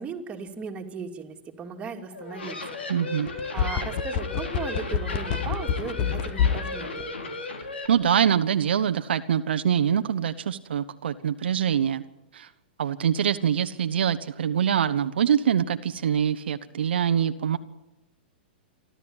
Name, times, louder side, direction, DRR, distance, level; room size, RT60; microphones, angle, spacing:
voice 1, 0.0-2.8 3.1-7.1, right 6 dB, 20° right, 2 dB, 2.8 m, -37 dB
sound 1, 2.1-7.9, left 3 dB, 85° left, 3.7 m, -35 dB
voice 2, 2.9-3.3 7.9-12.0 12.3-12.5 12.8-17.6, right 8 dB, 75° right, 9 dB, 1.0 m, -24 dB
sound 2, 3.3-6.7 7.0-7.1, left 8 dB, 45° left, 1.4 m, -25 dB
27.5 x 12.5 x 8.9 m, 0.96 s
hypercardioid pair, 120°, 6 cm